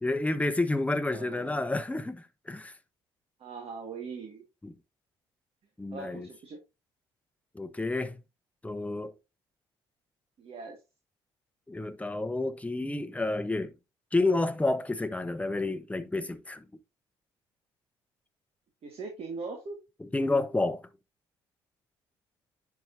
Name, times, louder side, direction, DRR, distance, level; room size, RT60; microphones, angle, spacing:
voice 1, 0.0-2.7 4.6-4.7 5.8-6.3 7.5-8.2 8.6-9.2 11.7-13.7 14.1-16.6 20.0-20.8, left 2 dB, 10° left, 1.0 m, -30 dB
voice 2, 1.1-1.6 3.4-4.4 5.9-6.6 10.4-10.8 18.8-19.8, right 4 dB, 50° right, 1.8 m, -40 dB
10.0 x 4.8 x 2.6 m
hypercardioid pair, 55°, 13 cm